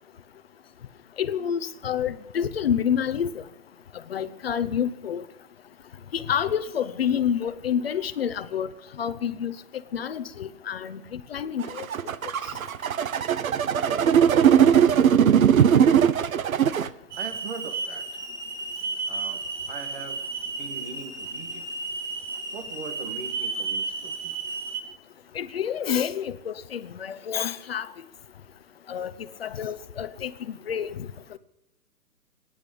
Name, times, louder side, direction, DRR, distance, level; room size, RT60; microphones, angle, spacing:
voice 1, 1.2-3.4 4.1-5.2 6.1-8.7 9.0-9.5 9.9-11.9 12.2-12.3 25.3-27.9 28.9-29.1 29.4-31.4, left 8 dB, 40° left, 13 dB, 0.8 m, -28 dB
sound 1, 11.6-16.9, right 8 dB, 60° right, 0.9 m, -19 dB
voice 2, 13.8-14.2 17.2-18.2 19.1-21.6 22.5-24.4, right 5 dB, 35° right, 7 dB, 1.7 m, -41 dB
Hiss / Alarm, 17.1-24.8, right 3 dB, 80° right, 4.6 m, -33 dB
25.5 x 10.5 x 5.2 m, 0.93 s
hypercardioid pair, 165°, 47 cm